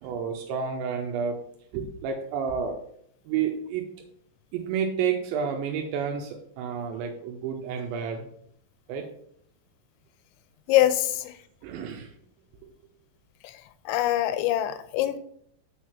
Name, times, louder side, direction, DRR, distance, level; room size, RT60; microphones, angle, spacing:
voice 1, 0.0-1.4 1.7-2.8 3.3-3.8 4.5-8.3 8.9-9.1 11.6-12.1, right 7 dB, 85° right, 3 dB, 2.9 m, -30 dB
voice 2, 10.7-11.1 13.9-15.2, left 13 dB, 85° left, 12 dB, 3.0 m, -23 dB
6.5 x 4.7 x 5.7 m, 0.66 s
omnidirectional pair, 5.2 m